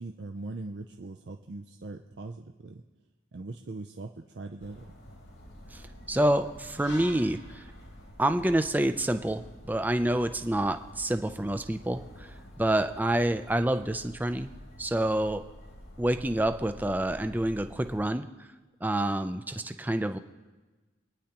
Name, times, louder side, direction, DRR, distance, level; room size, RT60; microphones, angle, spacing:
voice 1, 0.0-2.8 3.3-4.8, right 3 dB, 60° right, 4 dB, 0.5 m, -41 dB
sound 1, 4.6-18.0, left 1 dB, 85° left, 3.2 m, -48 dB
voice 2, 6.1-7.6 8.2-9.4 9.7-12.3 12.6-15.4 16.0-18.3 18.8-20.2, right 1 dB, 10° right, 8 dB, 0.4 m, -27 dB
26.0 x 9.9 x 2.9 m, 1.2 s
head